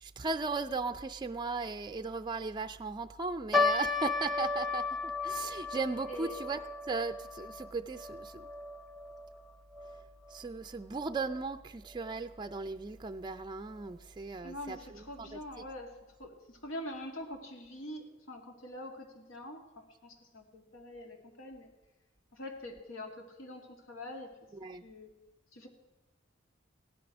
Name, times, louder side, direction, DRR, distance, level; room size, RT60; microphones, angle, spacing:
voice 1, 0.0-6.6 6.9-8.5 10.3-14.8 15.2-15.4 24.6-24.8, right 4 dB, 20° right, 8 dB, 0.4 m, -37 dB
sound 1, 3.5-10.0 10.3-10.4 11.1-11.4 12.0-12.1 12.5-12.6, left 3 dB, ahead, 0.8 m, -34 dB
voice 2, 6.1-6.4 14.4-21.7 22.3-24.3 24.8-25.1 25.5-25.7, left 1 dB, 90° left, 3 dB, 2.6 m, -44 dB
17.0 x 12.0 x 6.1 m, 1.1 s
head